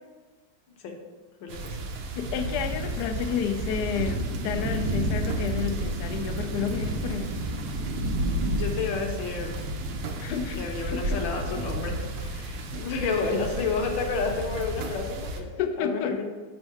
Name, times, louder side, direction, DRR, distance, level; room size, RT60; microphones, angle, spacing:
voice 1, 1.4-1.9 8.5-9.6 10.6-15.5 15.8-16.2, left 4 dB, 65° left, 3 dB, 1.4 m, -30 dB
sound 1, 1.5-15.4, right 2 dB, 70° right, 1.2 m, -34 dB
voice 2, 2.1-7.4 10.2-11.2 12.7-12.9 15.6-16.2, left 7 dB, 85° left, 6 dB, 0.9 m, -31 dB
sound 2, 2.4-15.0, right 1 dB, 85° right, 1.7 m, -34 dB
5.3 x 4.6 x 5.7 m, 1.4 s
omnidirectional pair, 2.3 m